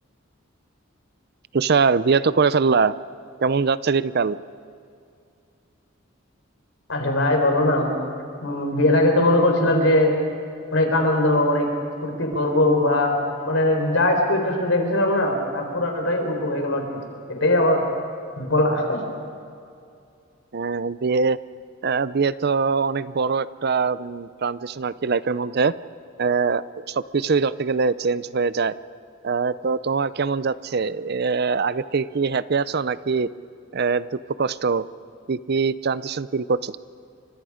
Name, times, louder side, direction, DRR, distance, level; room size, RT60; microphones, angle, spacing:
voice 1, 1.5-2.9 3.4-4.4 20.5-21.4 21.8-25.7 26.2-28.7 29.2-33.3 33.7-34.0 34.4-34.9 35.3-36.8, right 5 dB, 55° right, 16 dB, 0.5 m, -22 dB
voice 2, 6.9-7.9 8.4-10.1 10.7-11.7 12.0-16.9 17.3-17.8 18.4-19.0, left 1 dB, 75° left, 3 dB, 4.5 m, -20 dB
29.5 x 25.5 x 5.1 m, 2.4 s
head